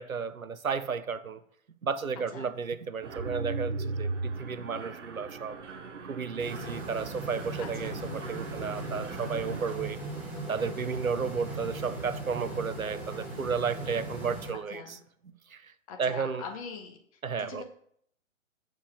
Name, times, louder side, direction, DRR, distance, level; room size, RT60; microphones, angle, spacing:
voice 1, 0.0-1.4 1.8-5.6 6.1-10.0 10.5-14.8 15.5-15.6 16.0-16.4 17.2-17.6, right 5 dB, 85° right, 0.7 m, -33 dB
Mechanisms, 3.0-9.7, right 3 dB, 60° right, 1.0 m, -38 dB
sound 1, 6.4-14.5, right 2 dB, 5° right, 0.6 m, -38 dB
voice 2, 7.6-8.0 14.7-15.0 15.9-17.0 17.4-17.6, left 6 dB, 25° left, 1.1 m, -42 dB
6.8 x 4.6 x 6.0 m
figure-of-eight pair, 130°, 41 cm